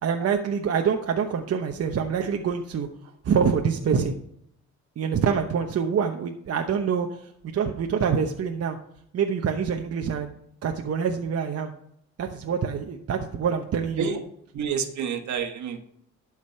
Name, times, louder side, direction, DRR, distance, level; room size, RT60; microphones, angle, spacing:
voice 1, 0.0-2.9 3.2-4.2 5.0-8.8 9.1-10.3 10.6-11.7 12.2-14.1, right 6 dB, 50° right, 4 dB, 1.0 m, -26 dB
voice 2, 14.5-15.8, right 6 dB, 70° right, 7 dB, 1.5 m, -29 dB
12.0 x 5.0 x 5.7 m, 0.72 s
cardioid pair, 90°, 30 cm